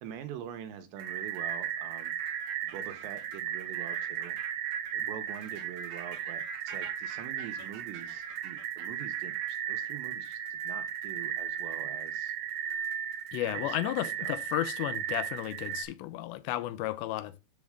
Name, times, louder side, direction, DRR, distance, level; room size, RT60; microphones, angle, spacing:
voice 1, 0.0-2.1 2.6-4.4 4.9-12.3 13.5-13.9 14.2-14.4, right 9 dB, 85° right, 3.3 m, -45 dB
sound 1, 1.0-15.8, right 9 dB, 65° right, 2.3 m, -36 dB
voice 2, 13.3-17.4, left 15 dB, 90° left, 2.8 m, -33 dB
7.6 x 7.3 x 3.6 m
omnidirectional pair, 5.0 m